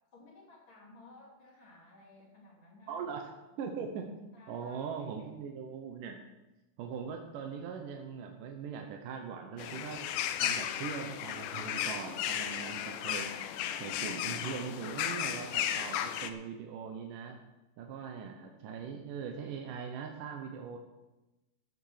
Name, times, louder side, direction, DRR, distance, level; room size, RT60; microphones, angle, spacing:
voice 1, 0.1-3.1 3.5-3.6 4.3-5.1, left 2 dB, 35° left, -4 dB, 3.6 m, -56 dB
voice 2, 2.9-3.3 3.6-6.2 6.8-10.1 10.4-13.3 13.8-17.4 17.8-20.8, right 6 dB, 75° right, 3 dB, 2.5 m, -41 dB
sound 1, 9.6-16.3, left 10 dB, 80° left, 2.2 m, -35 dB
14.5 x 6.7 x 6.6 m, 1.0 s
omnidirectional pair, 3.9 m